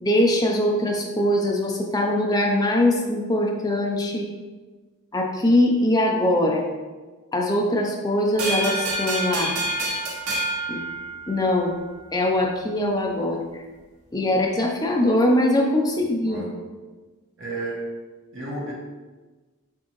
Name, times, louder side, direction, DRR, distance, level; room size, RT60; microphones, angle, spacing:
voice 1, 0.0-4.3 5.1-6.7 7.3-9.6 10.7-10.8 11.3-11.7 12.1-13.4 14.1-16.4, left 1 dB, 15° left, 0 dB, 0.4 m, -22 dB
sound 1, 8.4-11.6, right 1 dB, 85° right, 1.1 m, -27 dB
voice 2, 15.9-16.6 17.4-18.0 18.3-18.7, right 2 dB, 60° right, -4 dB, 1.0 m, -33 dB
4.4 x 3.7 x 3.0 m, 1.3 s
head